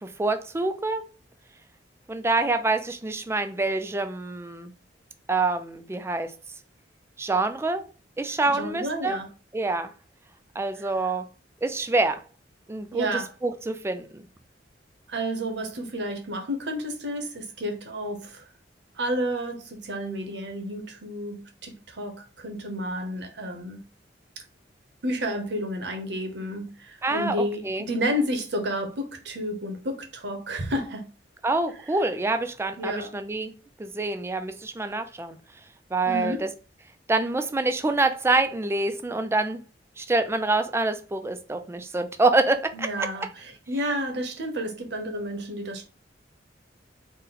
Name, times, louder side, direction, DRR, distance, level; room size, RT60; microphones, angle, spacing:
voice 1, 0.0-1.1 2.1-4.7 5.3-6.3 7.2-7.9 8.2-9.2 9.5-9.9 10.6-11.3 11.6-12.2 12.7-14.2 27.0-27.9 31.4-33.5 33.8-35.4 35.9-36.5 37.1-39.6 40.0-43.1, right 2 dB, 15° right, 0.3 m, -26 dB
voice 2, 8.5-9.3 10.8-10.9 12.9-13.3 15.1-18.5 19.0-23.8 25.0-31.1 32.8-33.2 36.1-36.4 42.7-45.8, equal, 70° right, 0.9 m, -31 dB
4.0 x 2.1 x 3.9 m
head